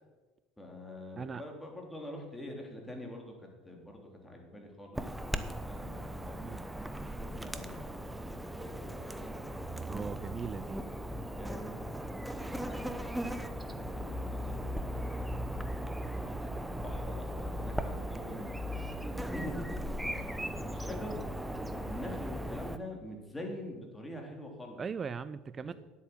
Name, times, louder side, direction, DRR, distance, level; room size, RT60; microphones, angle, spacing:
voice 1, 0.6-6.5 7.1-9.5 11.3-11.8 12.1-15.2 15.7-20.3 20.6-21.3 21.7-24.8 25.6-25.7, left 1 dB, 10° left, 1 dB, 3.3 m, -46 dB
Chirp tweet / Buzz, 4.9-22.8, equal, 5° right, 0.9 m, -38 dB
voice 2, 9.9-10.8 24.8-25.7, right 6 dB, 30° right, 15 dB, 0.4 m, -39 dB
10.0 x 8.3 x 7.1 m, 1.2 s
hypercardioid pair, 80°, 0 cm